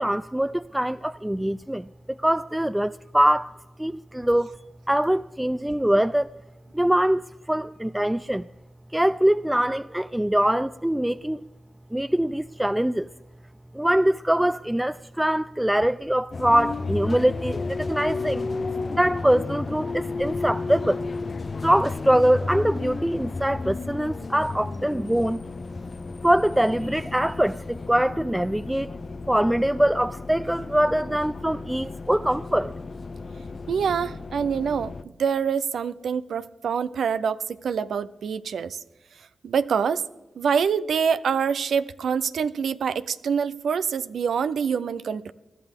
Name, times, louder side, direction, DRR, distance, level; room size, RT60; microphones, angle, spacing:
voice 1, 0.0-3.5 3.8-4.6 4.9-6.3 6.7-8.5 8.9-11.4 11.9-13.1 13.7-18.5 18.9-21.0 21.6-25.4 26.2-28.9 29.3-32.7, right 1 dB, 10° right, 0.3 m, -23 dB
sound 1, 16.3-35.0, left 3 dB, 50° left, 0.6 m, -33 dB
voice 2, 33.7-34.9 35.2-38.8 39.4-40.0 40.4-45.3, right 6 dB, 75° right, 0.5 m, -25 dB
20.5 x 12.5 x 3.6 m
supercardioid pair, 40°, 0 cm